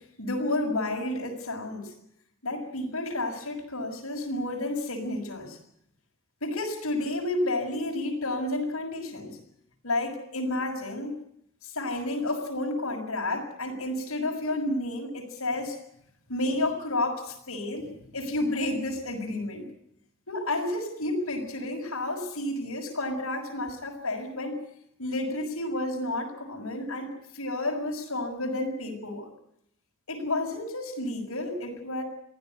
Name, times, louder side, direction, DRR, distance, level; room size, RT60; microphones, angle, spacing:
voice 1, 0.2-1.9 2.4-5.6 6.4-9.4 9.8-11.1 11.7-15.8 16.3-17.9 18.1-19.7 20.3-24.6 25.0-29.3 30.1-32.0, left 1 dB, 90° left, 0 dB, 6.3 m, -31 dB
23.5 x 16.0 x 9.5 m, 0.74 s
head